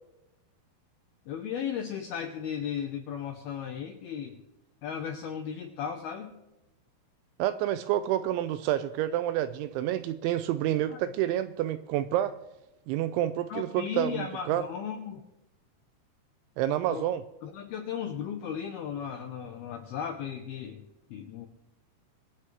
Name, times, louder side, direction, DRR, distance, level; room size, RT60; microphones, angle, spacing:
voice 1, 1.3-4.4 4.8-6.3 10.9-11.0 13.5-15.2 16.9-17.1 17.4-20.8 21.1-21.5, left 8 dB, 80° left, 4 dB, 2.2 m, -36 dB
voice 2, 7.4-12.4 12.9-14.7 16.6-17.2, right 12 dB, 85° right, 12 dB, 2.7 m, -28 dB
25.5 x 8.6 x 3.3 m, 0.97 s
omnidirectional pair, 5.7 m